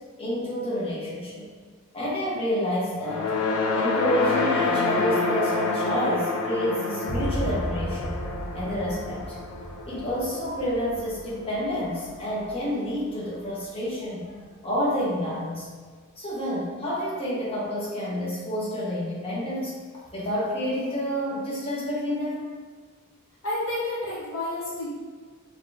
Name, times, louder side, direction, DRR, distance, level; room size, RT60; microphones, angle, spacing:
voice 1, 0.2-1.5 1.9-3.3 3.7-8.2 8.5-9.4 9.9-14.4 14.6-15.7 16.2-19.8 20.1-22.5, equal, 25° left, -9 dB, 1.2 m, -29 dB
sound 1, 3.0-11.4, left 3 dB, 85° left, 0.5 m, -28 dB
Boom, 7.1-14.9, right 1 dB, 60° right, 0.5 m, -36 dB
voice 2, 23.4-24.9, left 2 dB, 65° left, -7 dB, 1.0 m, -30 dB
5.1 x 3.0 x 2.7 m, 1.5 s
head